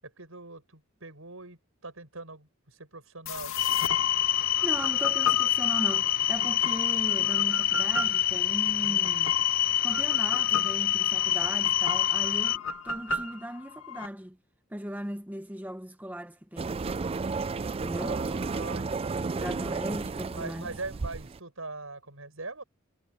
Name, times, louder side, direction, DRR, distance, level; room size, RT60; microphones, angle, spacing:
voice 1, 0.0-3.5 8.8-9.1 10.4-10.5 17.9-19.6 20.4-22.6, right 3 dB, 80° right, 7.0 m, -42 dB
sound 1, 3.3-14.1, left 5 dB, 75° left, 2.4 m, -35 dB
sound 2, 3.6-12.6, left 12 dB, 45° left, 0.4 m, -26 dB
voice 2, 4.2-9.3 9.6-14.4 14.7-16.8 17.8-18.2 19.4-20.7, equal, 10° right, 1.0 m, -38 dB
sound 3, 16.6-21.4, right 4 dB, 30° right, 0.4 m, -32 dB
head